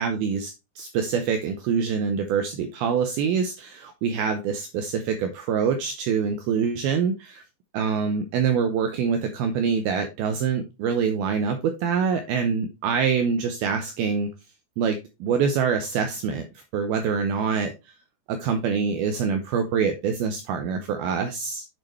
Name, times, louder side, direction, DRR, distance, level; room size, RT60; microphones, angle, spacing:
voice 1, 0.0-7.4 7.7-14.3 14.8-17.7 18.3-21.7, right 6 dB, 85° right, 7 dB, 2.2 m, -25 dB
8.9 x 6.4 x 3.2 m, 0.26 s
omnidirectional pair, 5.3 m